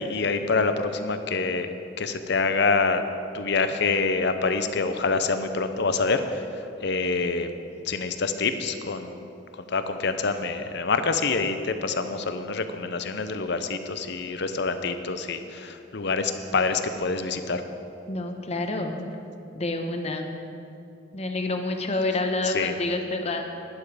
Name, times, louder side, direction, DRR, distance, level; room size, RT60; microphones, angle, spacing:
voice 1, 0.0-1.7 2.0-3.0 3.3-6.2 6.8-7.5 7.9-9.1 9.7-17.6 22.5-22.7, left 4 dB, 60° left, 9 dB, 0.7 m, -26 dB
voice 2, 18.1-19.1 19.5-20.3 21.1-23.5, left 2 dB, 35° left, 4 dB, 1.0 m, -28 dB
11.5 x 11.0 x 5.0 m, 2.7 s
head